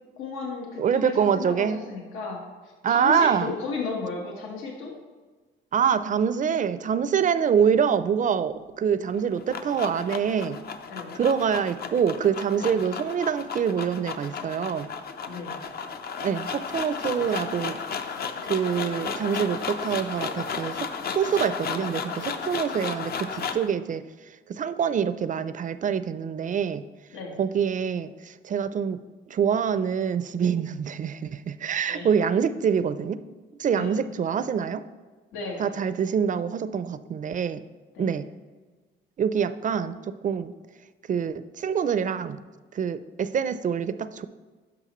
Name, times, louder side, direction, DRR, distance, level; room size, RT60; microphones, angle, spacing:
voice 1, 0.2-4.9 10.9-11.1 12.6-12.7 15.2-15.6 17.2-17.3 27.1-27.4 31.9-32.1 33.7-34.0 35.3-35.7 37.9-38.1, left 4 dB, 90° left, 0 dB, 1.3 m, -34 dB
voice 2, 0.8-1.8 2.8-3.5 5.7-10.6 11.1-14.9 16.2-17.8 18.5-20.9 21.1-24.0 24.5-26.8 27.4-29.0 29.3-33.2 33.6-34.8 35.6-37.6 38.0-38.3 39.2-40.5 41.1-42.4 42.7-44.3, right 7 dB, 40° right, 13 dB, 0.4 m, -25 dB
sound 1, 9.1-23.7, left 6 dB, 50° left, 0.6 m, -34 dB
9.9 x 6.2 x 3.1 m, 1.3 s
cardioid pair, 90°, 20 cm